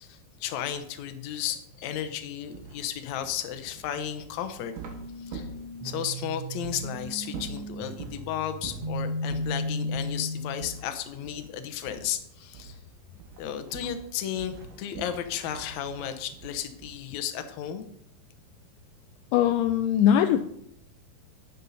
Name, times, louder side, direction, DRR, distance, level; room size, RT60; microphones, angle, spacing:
voice 1, 0.0-4.7 5.2-5.5 5.8-12.8 13.4-17.9, left 10 dB, 70° left, 8 dB, 1.8 m, -34 dB
sound 1, 2.5-6.2 6.6-6.8 7.3-8.2 8.6-8.9 9.3-9.5 9.9-10.2 10.6-11.5 11.8-12.2 12.5-12.9 13.2-17.1, right 5 dB, 65° right, 2.6 m, -44 dB
sound 2, 4.8-10.8, left 1 dB, 5° right, 1.5 m, -35 dB
voice 2, 19.3-20.4, left 10 dB, 85° left, 9 dB, 1.9 m, -21 dB
11.0 x 9.8 x 4.1 m, 0.74 s
omnidirectional pair, 4.3 m